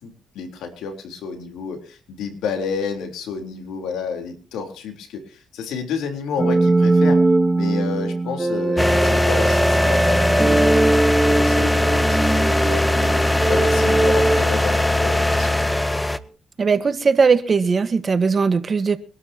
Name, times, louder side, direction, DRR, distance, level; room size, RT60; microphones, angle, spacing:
voice 1, 0.0-7.2 7.5-15.6, left 6 dB, 85° left, 3.8 m, -31 dB
sound 1, 6.4-15.3, right 2 dB, 20° right, 1.5 m, -20 dB
sound 2, 8.8-16.2, left 1 dB, 10° left, 0.9 m, -20 dB
voice 2, 16.6-19.0, right 5 dB, 35° right, 1.4 m, -19 dB
24.0 x 12.5 x 2.9 m
cardioid pair, 90°, 0 cm